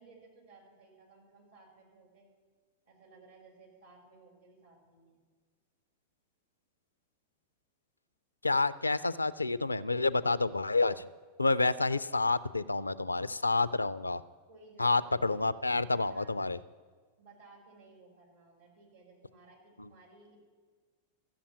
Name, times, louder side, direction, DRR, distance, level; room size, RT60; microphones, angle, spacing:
voice 1, 0.0-2.3 2.8-5.2 14.5-15.4 15.8-16.4 17.2-20.4, right 3 dB, 65° right, -1 dB, 5.0 m, -58 dB
voice 2, 8.4-11.1 11.4-14.2 14.8-16.6, left 3 dB, 80° left, 17 dB, 0.4 m, -29 dB
14.0 x 7.2 x 8.7 m, 1.5 s
figure-of-eight pair, 90°, 0 cm